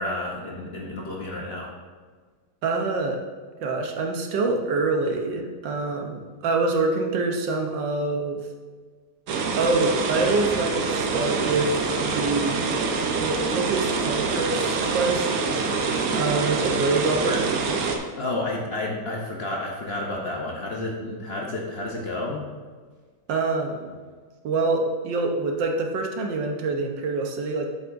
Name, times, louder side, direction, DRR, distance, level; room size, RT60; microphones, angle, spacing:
voice 1, 0.0-1.7 18.2-22.4, left 2 dB, 45° left, -2 dB, 0.9 m, -30 dB
voice 2, 2.6-3.2 3.6-8.4 9.6-11.7 12.0-12.8 13.2-15.3 16.1-17.5 23.3-24.0 24.4-27.7, right 3 dB, 90° right, 3 dB, 1.6 m, -25 dB
sound 1, 9.3-18.0, right 4 dB, 65° right, 1.1 m, -25 dB
7.7 x 7.2 x 2.6 m, 1.5 s
omnidirectional pair, 1.9 m